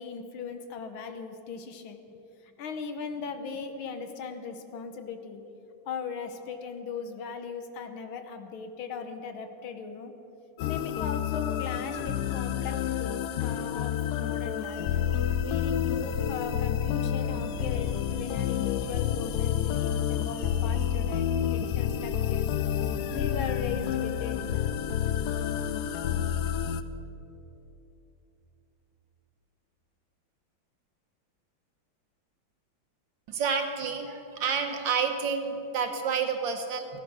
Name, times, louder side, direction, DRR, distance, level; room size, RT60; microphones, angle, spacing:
voice 1, 0.0-2.0 2.4-5.4 5.9-10.1 10.6-15.0 15.4-22.5 23.1-24.5 24.8-24.9, left 5 dB, 70° left, 7 dB, 1.7 m, -38 dB
sound 1, 10.6-26.8, left 9 dB, 90° left, 0.9 m, -29 dB
voice 2, 33.3-36.9, right 6 dB, 65° right, 5 dB, 1.7 m, -29 dB
15.5 x 11.0 x 6.2 m, 3.0 s
omnidirectional pair, 2.3 m